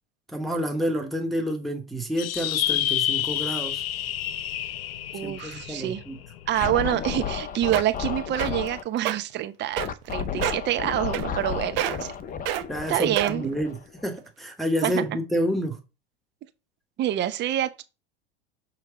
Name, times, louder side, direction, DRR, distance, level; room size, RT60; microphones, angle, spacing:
voice 1, 0.3-3.8 5.2-6.2 12.7-13.7 14.0-15.8, equal, ahead, 1.2 m, -29 dB
sound 1, 2.2-6.9, left 12 dB, 70° left, 0.6 m, -29 dB
voice 2, 5.1-6.0 6.5-12.1 12.9-13.5 14.8-15.0 17.0-17.8, right 12 dB, 35° right, 0.8 m, -27 dB
Scratching (performance technique), 6.5-8.8 9.8-14.1, left 7 dB, 25° left, 0.6 m, -32 dB
sound 2, 7.3-7.4 7.7-8.0 8.4-8.7 9.0-9.2 9.8-10.1 10.4-10.7 11.1-11.5 11.8-12.1 12.5-12.6 13.2-13.5 14.1-14.2, right 12 dB, 60° right, 1.0 m, -27 dB
6.3 x 3.2 x 4.8 m
hypercardioid pair, 85°, 31 cm